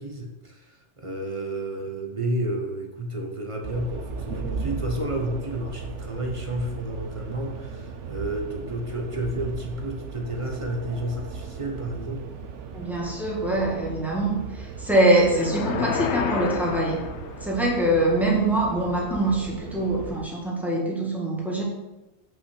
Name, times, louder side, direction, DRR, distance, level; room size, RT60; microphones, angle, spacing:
voice 1, 0.0-12.3, right 1 dB, 30° right, 3 dB, 1.1 m, -31 dB
sound 1, 3.6-20.2, right 5 dB, 90° right, 1.1 m, -37 dB
voice 2, 12.7-17.0 17.4-21.6, right 1 dB, ahead, -4 dB, 1.9 m, -24 dB
sound 2, 15.3-17.7, left 7 dB, 75° left, 0.9 m, -30 dB
5.9 x 5.4 x 6.5 m, 1.0 s
omnidirectional pair, 1.2 m